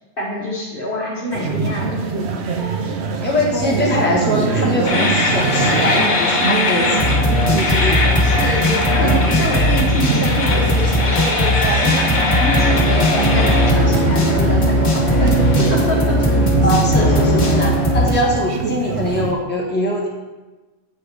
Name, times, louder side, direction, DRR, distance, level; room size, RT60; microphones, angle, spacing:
voice 1, 0.2-2.0 8.2-15.3 15.7-16.2, left 1 dB, 45° left, -4 dB, 1.6 m, -26 dB
sound 1, 1.3-19.3, right 4 dB, 65° right, 0.9 m, -24 dB
voice 2, 3.2-7.2 7.6-8.0 16.6-20.1, left 1 dB, 10° left, -5 dB, 1.4 m, -22 dB
sound 2, 4.8-18.1, left 1 dB, 75° left, 1.6 m, -17 dB
7.5 x 4.7 x 4.9 m, 1.2 s
omnidirectional pair, 1.3 m